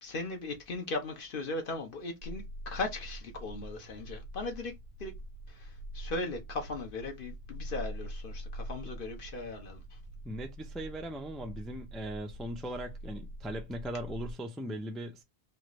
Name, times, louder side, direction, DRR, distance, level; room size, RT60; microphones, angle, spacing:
voice 1, 0.0-4.7 5.0-5.1 5.5-9.8, left 2 dB, 60° left, 1.0 m, -38 dB
sound 1, 2.2-14.3, right 1 dB, 90° right, 0.8 m, -44 dB
voice 2, 10.2-15.2, equal, ahead, 0.3 m, -39 dB
3.2 x 2.5 x 3.0 m
omnidirectional pair, 1.1 m